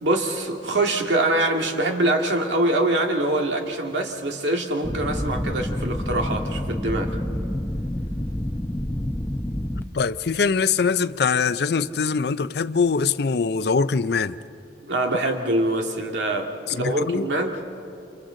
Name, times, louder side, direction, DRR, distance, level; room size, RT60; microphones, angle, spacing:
voice 1, 0.0-7.1 14.9-17.6, right 1 dB, 85° right, 2.1 m, -24 dB
sound 1, 4.8-9.8, left 1 dB, 10° left, 0.6 m, -28 dB
voice 2, 9.9-14.4 16.8-17.3, left 5 dB, 65° left, 0.5 m, -23 dB
29.5 x 28.0 x 3.9 m
head